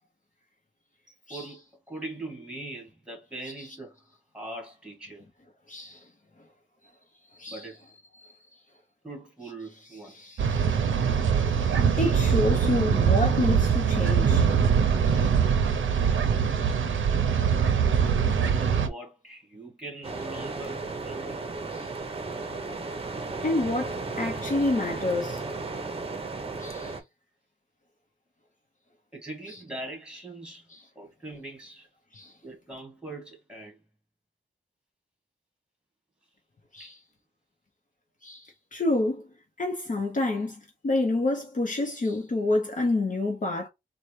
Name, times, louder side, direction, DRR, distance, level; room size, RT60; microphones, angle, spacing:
voice 1, 1.3-4.0 4.3-5.2 7.5-7.8 9.0-10.1 18.4-21.5 29.1-30.7 31.0-31.9 32.4-33.8 36.8-37.0, right 2 dB, 5° right, 1.9 m, -41 dB
voice 2, 5.7-6.0 7.4-7.6 8.2-8.3 9.9-14.4 15.0-15.3 16.0-16.2 21.8-21.9 23.4-25.4 26.6-27.0 30.7-30.8 32.1-32.3 36.7-37.0 38.2-39.2 39.6-43.7, left 2 dB, 40° left, 0.9 m, -29 dB
sound 1, 10.4-18.9, right 7 dB, 80° right, 0.6 m, -23 dB
sound 2, 20.0-27.0, right 3 dB, 30° right, 0.7 m, -34 dB
4.0 x 2.3 x 3.1 m
wide cardioid pair, 130°, 20 cm